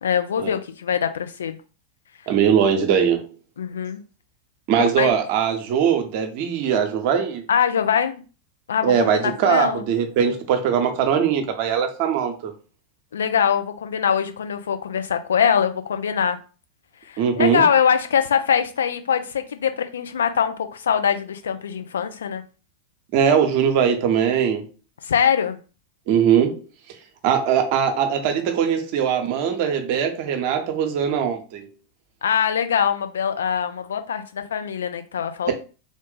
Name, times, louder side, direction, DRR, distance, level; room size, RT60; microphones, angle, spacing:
voice 1, 0.0-1.6 3.6-4.0 4.8-5.1 7.5-8.1 8.7-9.8 13.1-16.4 17.0-22.4 25.0-25.6 32.2-35.6, left 7 dB, 65° left, 0.5 m, -23 dB
voice 2, 2.3-3.3 4.7-7.4 8.8-12.5 17.2-17.6 23.1-24.7 26.1-26.6 27.2-31.7, right 8 dB, 45° right, 0.8 m, -21 dB
3.6 x 2.5 x 3.9 m
figure-of-eight pair, 90°, 0 cm